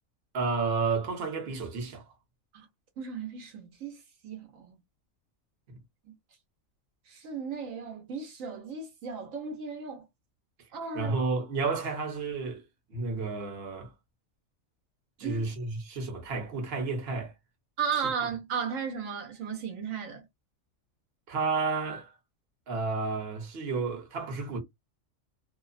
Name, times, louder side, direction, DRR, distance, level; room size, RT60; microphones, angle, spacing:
voice 1, 0.3-2.0 5.7-5.8 10.9-12.6 12.9-13.9 15.2-17.3 18.0-18.1 21.3-22.1 22.7-24.6, right 4 dB, 50° right, 1.0 m, -31 dB
voice 2, 3.0-4.8 7.1-10.0 10.7-11.1 15.2-15.4 17.8-20.2, right 6 dB, 80° right, 1.1 m, -35 dB
2.7 x 2.0 x 2.4 m
omnidirectional pair, 1.4 m